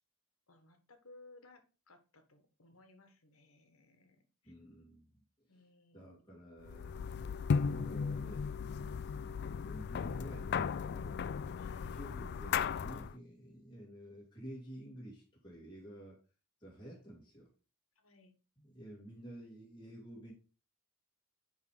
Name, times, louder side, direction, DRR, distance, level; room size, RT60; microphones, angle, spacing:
voice 1, 0.5-4.5 5.5-6.2 11.6-11.9 18.0-18.3, left 2 dB, 70° left, 7 dB, 1.5 m, -61 dB
voice 2, 4.4-5.2 5.5-5.6 5.9-6.9 7.5-11.2 11.9-16.2 16.6-17.5 18.6-20.3, right 1 dB, 20° left, -5 dB, 3.0 m, -51 dB
sound 1, 6.7-13.2, left 6 dB, 50° left, 0.3 m, -36 dB
9.5 x 3.5 x 5.0 m, 0.33 s
head